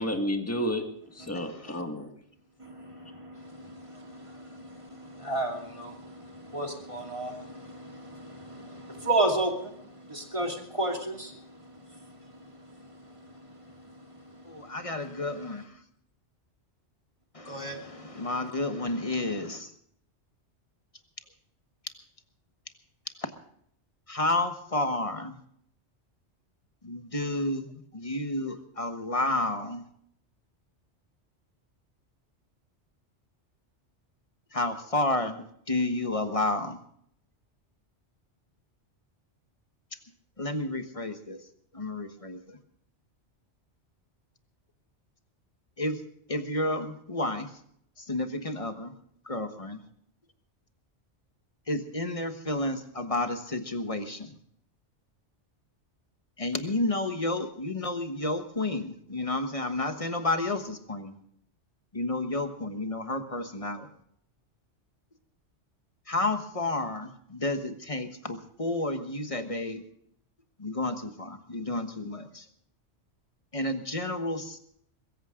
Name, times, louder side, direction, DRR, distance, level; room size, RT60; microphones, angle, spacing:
voice 1, 0.0-2.1, equal, 10° left, 1.7 m, -31 dB
voice 2, 1.3-1.8 14.5-15.8 17.3-19.7 23.2-23.3 24.1-25.4 26.8-29.8 34.5-36.8 40.4-41.4 41.7-42.6 45.8-46.0 46.3-47.5 48.0-48.9 49.2-49.8 51.7-54.3 56.4-61.2 61.9-63.9 66.1-69.8 70.6-72.5 73.5-74.6, left 2 dB, 30° left, 1.3 m, -31 dB
voice 3, 2.6-15.7 17.4-18.5, right 2 dB, 25° right, 2.7 m, -35 dB
22.5 x 14.5 x 3.8 m
omnidirectional pair, 1.2 m